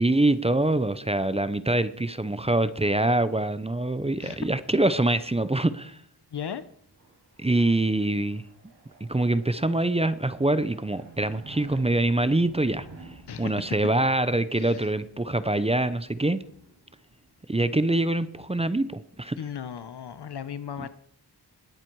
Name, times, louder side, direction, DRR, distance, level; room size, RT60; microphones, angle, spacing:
voice 1, 0.0-6.0 7.4-8.4 9.1-12.9 13.4-16.4 17.5-19.4 20.8-20.9, right 2 dB, 15° right, 14 dB, 0.7 m, -24 dB
voice 2, 6.3-6.6 13.3-13.5 14.6-14.9 19.4-20.9, left 8 dB, 75° left, 14 dB, 0.9 m, -36 dB
sound 1, 6.3-17.6, right 3 dB, 80° right, 6.7 m, -52 dB
20.0 x 7.5 x 4.7 m, 0.63 s
wide cardioid pair, 90°, 40 cm